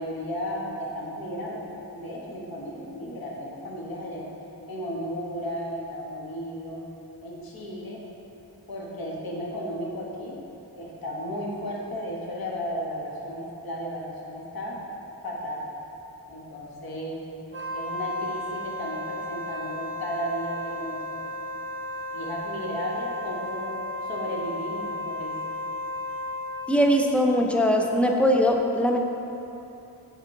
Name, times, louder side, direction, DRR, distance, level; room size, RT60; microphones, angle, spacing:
voice 1, 0.0-4.3 4.7-6.8 7.2-8.0 8.7-10.4 10.7-14.8 15.2-15.7 16.3-17.2 17.7-21.3 22.1-23.7 24.0-25.4, equal, 60° left, -4 dB, 1.3 m, -34 dB
Wind instrument woodwind instrument, 17.5-26.8, left 1 dB, 30° right, 0.7 m, -34 dB
voice 2, 26.7-29.0, equal, 5° left, 1 dB, 0.4 m, -21 dB
8.8 x 4.4 x 2.7 m, 2.9 s
wide cardioid pair, 110°, 39 cm